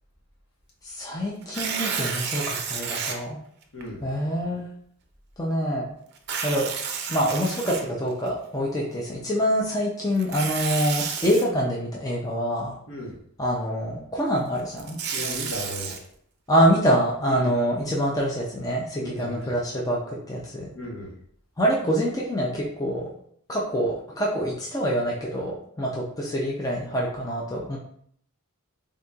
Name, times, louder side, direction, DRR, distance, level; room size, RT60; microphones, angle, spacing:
voice 1, 0.8-3.4 4.0-4.7 5.4-5.9 6.4-6.7 7.1-12.7 13.4-15.0 16.5-20.7 21.6-23.1 23.5-27.8, equal, 15° left, -3 dB, 0.5 m, -25 dB
Tearing, 1.4-3.2 3.8-3.9 6.2-8.3 10.2-11.4 14.6-16.0, right 6 dB, 50° right, 0.5 m, -31 dB
voice 2, 3.7-4.0 12.9-13.1 15.1-15.9 17.3-17.5 19.0-19.5 20.7-21.1, left 1 dB, 65° left, -3 dB, 1.2 m, -35 dB
4.0 x 3.7 x 2.3 m, 0.65 s
head